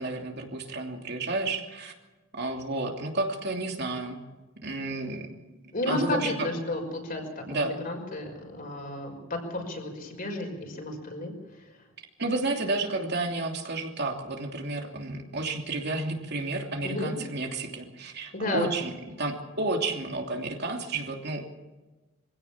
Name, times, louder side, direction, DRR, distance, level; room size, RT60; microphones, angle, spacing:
voice 1, 0.0-1.9 2.3-4.2 4.6-5.3 5.9-6.5 7.5-7.7 12.2-18.9 19.2-21.4, right 2 dB, 50° right, 2 dB, 2.9 m, -31 dB
voice 2, 5.7-11.3 11.7-11.8 16.8-17.1 18.3-18.7, left 2 dB, 45° left, 3 dB, 5.6 m, -32 dB
25.0 x 16.5 x 7.3 m, 1.2 s
head